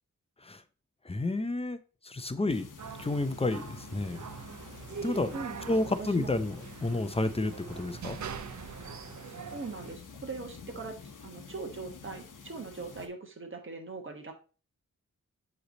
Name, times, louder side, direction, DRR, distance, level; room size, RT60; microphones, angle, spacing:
voice 1, 1.1-1.8 2.0-2.7 3.0-4.2 5.0-5.3 5.7-8.2, left 2 dB, 20° left, 11 dB, 0.5 m, -30 dB
sound 1, 2.5-13.1, left 5 dB, 65° left, 0.9 m, -48 dB
sound 2, 2.8-10.0, right 7 dB, 55° right, 0.5 m, -43 dB
voice 2, 5.3-6.3 9.5-14.3, right 4 dB, 35° right, 3 dB, 1.2 m, -41 dB
7.7 x 3.3 x 4.0 m, 0.35 s
wide cardioid pair, 105°, 34 cm